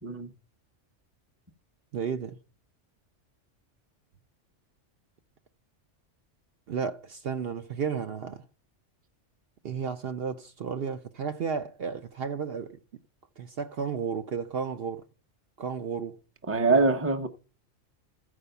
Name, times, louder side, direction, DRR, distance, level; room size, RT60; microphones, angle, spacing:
voice 1, 1.9-2.4 6.7-8.4 9.6-12.8 13.4-15.0 15.6-16.2, right 6 dB, 60° right, 0.8 m, -33 dB
voice 2, 16.5-17.3, right 3 dB, 15° right, 0.8 m, -23 dB
14.0 x 5.0 x 6.7 m
omnidirectional pair, 1.2 m